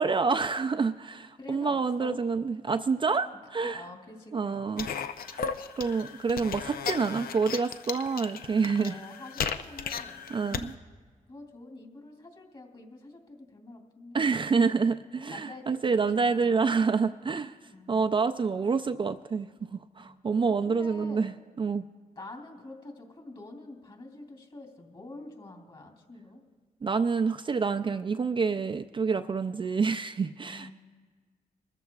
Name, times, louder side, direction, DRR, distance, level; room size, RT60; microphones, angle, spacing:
voice 1, 0.0-3.8 4.3-4.9 5.3-9.0 10.3-10.7 14.1-17.5 17.9-21.3 21.6-21.8 26.8-30.7, right 5 dB, 35° right, 8 dB, 0.4 m, -27 dB
voice 2, 1.4-2.2 3.6-5.0 8.8-10.8 11.3-14.2 14.7-16.7 17.6-18.0 20.0-20.2 20.5-21.3 22.2-26.4 30.5-30.7, left 2 dB, 35° left, 3 dB, 2.9 m, -47 dB
sound 1, 4.8-10.7, left 7 dB, 80° left, 0.6 m, -36 dB
24.0 x 13.5 x 2.3 m, 1.5 s
cardioid pair, 80°, 15 cm